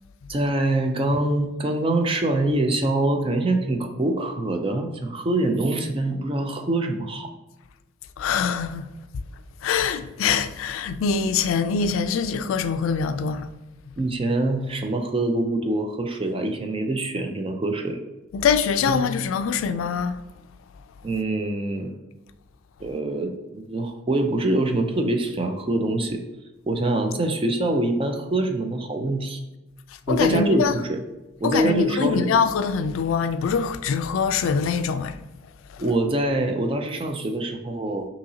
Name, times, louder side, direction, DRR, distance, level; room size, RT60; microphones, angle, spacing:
voice 1, 0.3-7.3 14.0-18.0 18.9-19.1 21.0-21.9 22.8-26.2 26.7-29.4 30.1-31.0 31.4-32.3 35.8-38.1, right 2 dB, 25° right, 0.4 m, -24 dB
voice 2, 8.2-8.9 9.6-13.5 18.3-20.2 30.1-30.7 31.4-35.1 35.7-35.8, left 6 dB, 85° left, 0.3 m, -23 dB
5.5 x 2.8 x 2.7 m
head